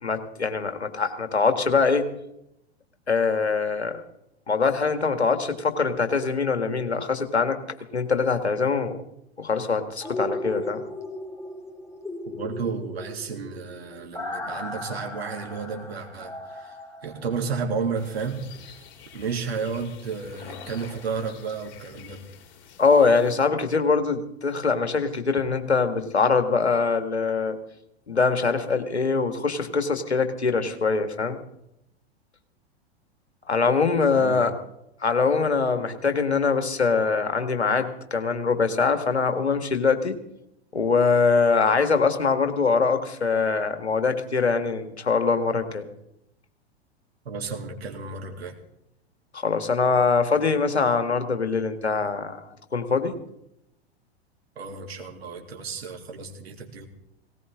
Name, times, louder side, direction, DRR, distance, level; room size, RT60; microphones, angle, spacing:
voice 1, 0.0-2.1 3.1-4.0 4.5-7.6 7.9-9.0 9.4-10.8 22.8-27.6 28.1-31.4 33.5-34.5 35.0-40.2 40.7-45.9 49.3-52.5 52.7-53.1, left 4 dB, 85° left, 8 dB, 1.9 m, -23 dB
sound 1, 10.0-17.9 18.2-18.3, left 1 dB, 10° left, 2.4 m, -37 dB
voice 2, 12.3-16.8 17.0-18.5 19.1-22.3 34.1-34.5 47.2-48.5 54.5-56.9, right 5 dB, 70° right, 2 dB, 3.1 m, -32 dB
sound 2, 17.9-23.3, left 7 dB, 55° left, 3.6 m, -47 dB
19.0 x 18.0 x 3.7 m, 0.80 s
figure-of-eight pair, 95°, 32 cm